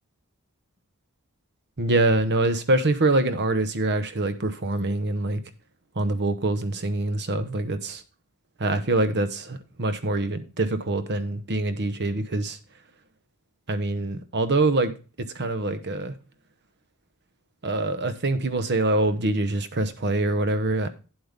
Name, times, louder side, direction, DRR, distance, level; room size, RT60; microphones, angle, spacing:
voice 1, 1.8-5.4 5.9-8.0 8.6-12.6 13.7-14.9 15.3-16.1 17.6-20.9, right 2 dB, 50° right, 1.0 m, -24 dB
9.8 x 7.8 x 3.5 m
head